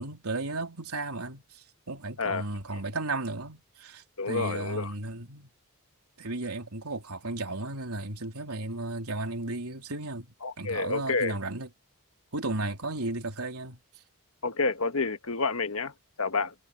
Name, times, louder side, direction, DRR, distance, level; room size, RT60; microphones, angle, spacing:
voice 1, 0.0-5.5 6.2-10.3 10.6-11.7 12.3-13.8, right 2 dB, 85° right, 3.6 m, -34 dB
voice 2, 4.2-4.9 10.4-11.3 14.4-15.9 16.2-16.5, left 4 dB, 70° left, 1.4 m, -29 dB
head